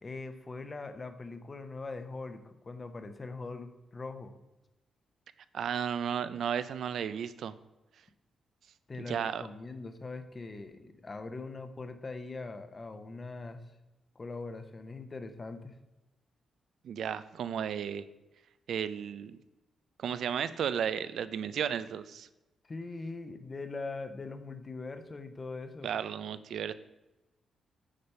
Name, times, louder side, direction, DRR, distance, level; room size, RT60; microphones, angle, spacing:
voice 1, 0.0-4.3 8.9-13.6 14.1-15.8 22.6-25.9, left 3 dB, 25° left, 9 dB, 0.8 m, -41 dB
voice 2, 5.5-7.6 9.0-9.4 16.8-18.0 18.7-19.4 20.0-22.3 25.8-26.7, right 8 dB, 70° right, 14 dB, 0.5 m, -34 dB
8.8 x 5.1 x 5.5 m, 1.0 s
cardioid pair, 135°, 0 cm